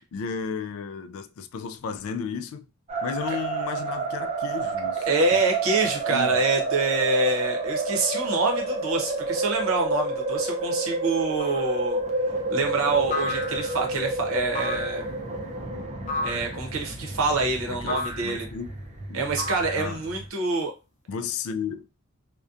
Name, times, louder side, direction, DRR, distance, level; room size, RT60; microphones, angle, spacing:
voice 1, 0.1-2.7 3.0-5.4 6.1-6.4 17.7-18.7 19.1-19.2 19.8-20.0 21.1-21.9, left 6 dB, 70° left, 0.3 m, -33 dB
sound 1, 2.9-20.3, right 3 dB, 30° right, 0.4 m, -30 dB
voice 2, 5.1-12.0 12.5-15.1 16.2-18.5 19.1-20.7, right 3 dB, 65° right, 0.7 m, -26 dB
sound 2, 11.4-11.8 13.1-13.9 14.5-15.1 16.1-16.6 17.9-18.4 19.4-20.1, left 3 dB, 35° left, 0.6 m, -32 dB
2.6 x 2.1 x 2.4 m
head